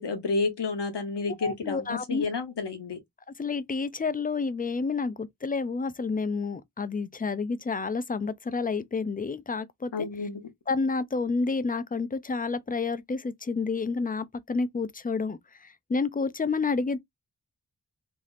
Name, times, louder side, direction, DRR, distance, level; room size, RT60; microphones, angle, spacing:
voice 1, 0.0-3.0 9.9-10.5, left 4 dB, 80° left, 0.9 m, -30 dB
voice 2, 1.4-2.3 3.4-10.1 10.7-17.0, left 4 dB, 25° left, 0.3 m, -29 dB
3.3 x 2.7 x 2.4 m
wide cardioid pair, 70°, 41 cm